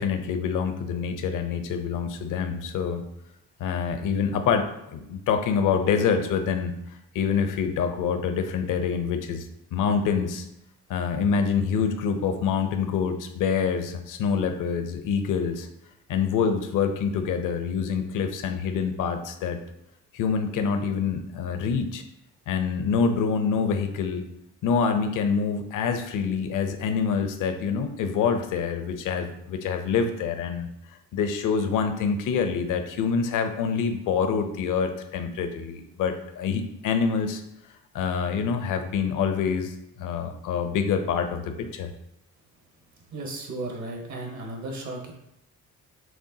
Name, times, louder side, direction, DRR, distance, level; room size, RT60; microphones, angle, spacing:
voice 1, 0.0-3.0 3.6-4.7 4.9-6.7 7.1-9.5 9.7-10.5 10.9-15.7 16.1-19.6 20.1-22.0 22.5-24.2 24.6-30.7 31.1-37.4 37.9-41.9, left 6 dB, 65° left, 7 dB, 0.6 m, -26 dB
voice 2, 43.1-45.1, right 2 dB, 60° right, 2 dB, 1.1 m, -35 dB
5.9 x 2.1 x 2.7 m, 0.81 s
supercardioid pair, 70°, 33 cm